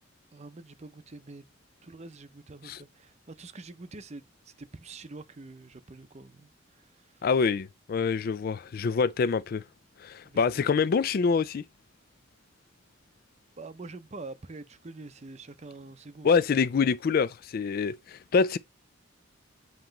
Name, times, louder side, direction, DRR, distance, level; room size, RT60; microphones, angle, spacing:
voice 1, 0.3-1.4 1.8-7.3 10.2-10.4 13.6-16.3, right 3 dB, 35° right, 0.6 m, -46 dB
voice 2, 7.2-9.6 10.0-11.6 16.2-18.6, left 5 dB, 45° left, 0.3 m, -26 dB
7.8 x 3.0 x 5.0 m
head